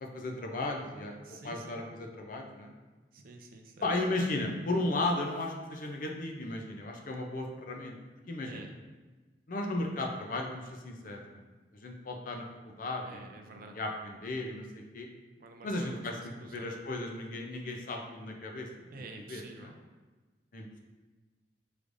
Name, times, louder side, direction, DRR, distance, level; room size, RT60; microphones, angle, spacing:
voice 1, 0.0-1.1 1.4-2.7 3.8-7.9 8.3-8.6 9.5-11.4 11.8-12.4 12.8-13.3 13.7-15.1 15.6-16.1 16.5-18.7 19.3-19.4 20.5-20.8, left 2 dB, 50° left, 2 dB, 0.5 m, -35 dB
voice 2, 1.2-1.8 3.1-3.9 8.5-8.7 13.0-13.8 15.4-16.7 18.9-19.8, right 3 dB, 55° right, 4 dB, 0.5 m, -49 dB
4.9 x 3.2 x 2.6 m, 1.3 s
head